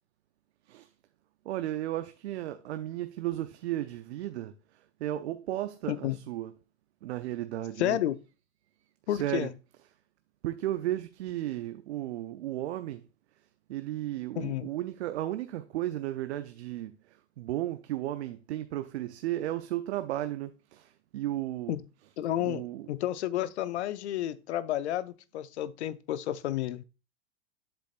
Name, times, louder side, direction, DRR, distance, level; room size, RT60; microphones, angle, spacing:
voice 1, 1.5-4.5 5.0-6.5 7.0-8.0 9.1-9.5 10.4-13.0 13.7-16.9 17.4-21.7 22.4-22.9, right 14 dB, 75° right, 0.6 m, -34 dB
voice 2, 5.9-6.2 7.8-8.2 9.1-9.5 14.4-14.7 21.7-21.8 22.2-26.8, left 12 dB, 75° left, 0.6 m, -31 dB
7.7 x 7.1 x 2.4 m
hypercardioid pair, 115°, 33 cm